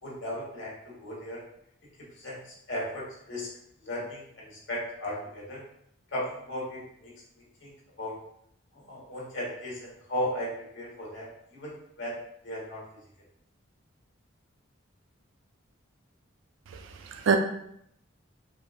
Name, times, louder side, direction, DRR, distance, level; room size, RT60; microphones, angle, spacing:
voice 1, 0.0-1.4 2.2-2.4 2.7-3.5 3.8-5.6 6.1-7.1 7.6-7.7 8.0-8.2 8.9-12.1 12.4-12.8, left 1 dB, 65° left, -4 dB, 1.2 m, -36 dB
voice 2, 16.7-17.4, right 6 dB, 70° right, 5 dB, 0.4 m, -27 dB
4.6 x 2.4 x 2.4 m, 0.73 s
head